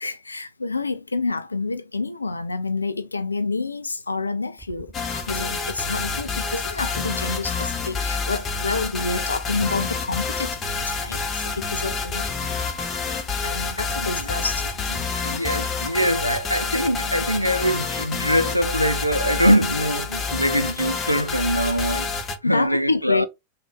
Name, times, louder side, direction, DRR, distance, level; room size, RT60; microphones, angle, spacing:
voice 1, 0.0-12.3 13.4-14.7 22.4-23.3, left 3 dB, 80° left, 0.3 m, -28 dB
Aircraft, 4.6-15.2, right 4 dB, 10° right, 0.6 m, -44 dB
sound 1, 4.9-22.4, left 4 dB, 25° left, 0.8 m, -28 dB
voice 2, 14.0-14.4 15.2-22.1 22.4-23.3, equal, 90° right, 0.4 m, -23 dB
3.7 x 2.3 x 3.4 m
figure-of-eight pair, 90°, 0 cm